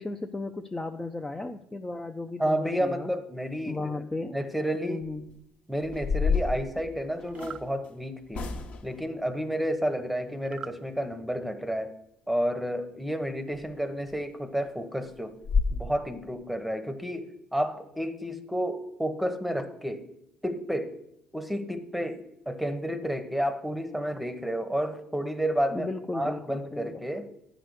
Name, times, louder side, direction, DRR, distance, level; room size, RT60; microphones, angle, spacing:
voice 1, 0.0-3.1 3.7-4.4 4.8-5.3 25.7-27.0, left 2 dB, 15° left, 4 dB, 0.5 m, -35 dB
voice 2, 2.4-4.0 4.3-5.1 5.7-8.5 8.8-11.9 12.3-15.4 15.7-20.1 20.4-20.9 21.3-27.3, equal, ahead, 9 dB, 1.0 m, -31 dB
sound 1, 5.1-5.3 5.8-7.6 8.3-9.0 13.5-13.6 14.1-14.2 14.6-14.7 15.0-15.1 15.4-15.8, left 5 dB, 55° left, 1.2 m, -29 dB
sound 2, 7.3-7.7 10.5-10.8, right 7 dB, 40° right, 0.4 m, -42 dB
9.1 x 5.1 x 7.9 m, 0.80 s
cardioid pair, 100°, 3 cm